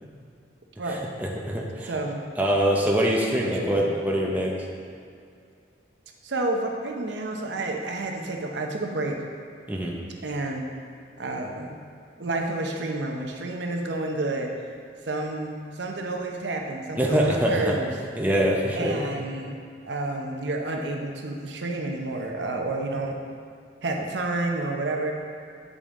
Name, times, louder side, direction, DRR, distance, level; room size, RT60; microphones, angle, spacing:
voice 1, 0.9-1.9 2.4-4.6 9.7-10.0 17.0-17.7 18.2-19.0, equal, 10° right, -2 dB, 0.6 m, -24 dB
voice 2, 1.9-2.3 3.4-3.9 6.2-9.2 10.2-10.6 11.2-11.8 12.2-14.5 15.1-17.9 18.7-23.2 23.8-25.1, right 2 dB, 75° right, 2 dB, 0.7 m, -30 dB
8.4 x 5.3 x 3.7 m, 2.4 s
head